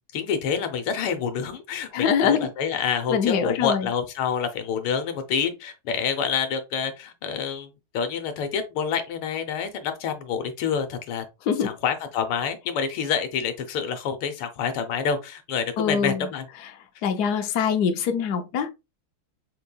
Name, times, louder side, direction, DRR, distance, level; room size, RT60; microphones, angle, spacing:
voice 1, 0.1-7.7 7.9-11.2 11.6-16.4, left 7 dB, 85° left, 1.7 m, -27 dB
voice 2, 1.9-2.5 3.1-3.9 11.5-11.7 15.8-16.3 17.0-18.7, left 7 dB, 65° left, 1.0 m, -23 dB
6.3 x 3.0 x 2.2 m
omnidirectional pair, 2.4 m